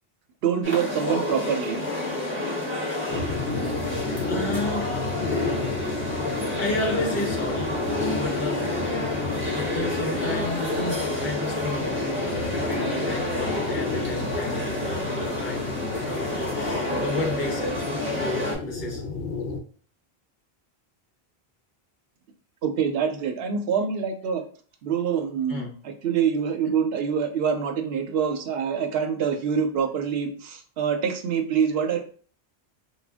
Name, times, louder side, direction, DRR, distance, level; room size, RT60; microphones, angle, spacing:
voice 1, 0.4-1.8 22.6-24.4 24.8-32.0, right 7 dB, 75° right, 5 dB, 0.8 m, -25 dB
sound 1, 0.6-18.6, left 2 dB, 15° right, 0.8 m, -29 dB
voice 2, 2.9-3.4 4.2-4.9 6.6-7.8 8.1-8.9 9.3-17.7 18.1-19.0 25.5-25.7, left 1 dB, 50° left, -1 dB, 1.0 m, -32 dB
sound 2, 3.1-19.6, left 3 dB, 80° left, 0.8 m, -32 dB
2.5 x 2.2 x 3.3 m, 0.43 s
omnidirectional pair, 1.1 m